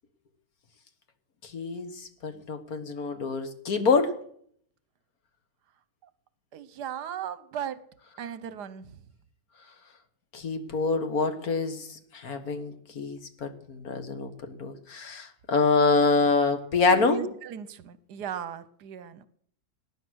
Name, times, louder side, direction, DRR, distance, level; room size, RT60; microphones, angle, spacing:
voice 1, 1.4-4.1 10.3-17.2, left 4 dB, 60° left, 1.8 m, -26 dB
voice 2, 6.5-7.8 8.2-8.9 16.9-19.3, right 9 dB, 75° right, 1.4 m, -37 dB
18.5 x 10.0 x 6.3 m
omnidirectional pair, 1.8 m